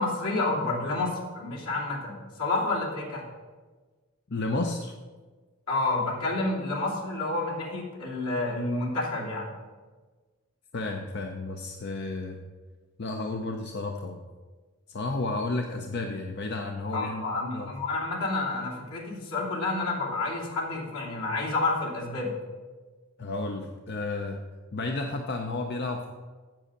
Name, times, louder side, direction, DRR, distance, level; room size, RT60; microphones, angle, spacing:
voice 1, 0.0-3.2 5.7-9.5 16.9-22.4, left 2 dB, 80° left, -4 dB, 2.8 m, -29 dB
voice 2, 4.3-4.9 10.7-12.4 13.0-14.2 14.9-17.2 17.5-17.7 23.2-24.4 24.7-26.1, left 2 dB, 50° left, 3 dB, 0.6 m, -32 dB
7.7 x 7.6 x 6.6 m, 1.3 s
head